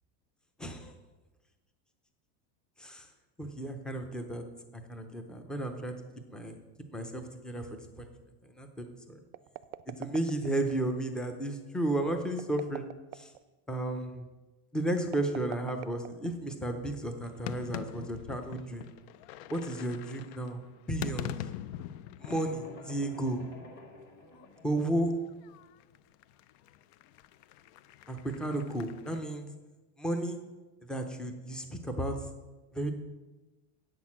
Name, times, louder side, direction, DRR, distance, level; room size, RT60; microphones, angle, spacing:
voice 1, 0.6-1.0 2.8-3.1 3.4-4.4 4.7-6.0 6.3-6.6 6.9-8.1 8.4-9.2 10.0-12.9 13.1-13.3 13.7-14.3 14.7-18.8 19.5-20.6 20.9-21.3 22.2-23.4 24.6-25.1 28.1-29.5 30.0-30.4 30.9-32.1 32.7-32.9, right 1 dB, ahead, 5 dB, 0.5 m, -33 dB
sound 1, 9.3-10.8 12.3-13.4 15.0-16.6, right 16 dB, 80° right, 0.5 m, -44 dB
sound 2, 17.2-23.7 23.9-29.2, left 11 dB, 55° left, 0.4 m, -44 dB
sound 3, 22.2-25.1, left 1 dB, 25° left, 1.5 m, -51 dB
8.5 x 6.2 x 7.3 m, 1.2 s
cardioid pair, 165°, 41 cm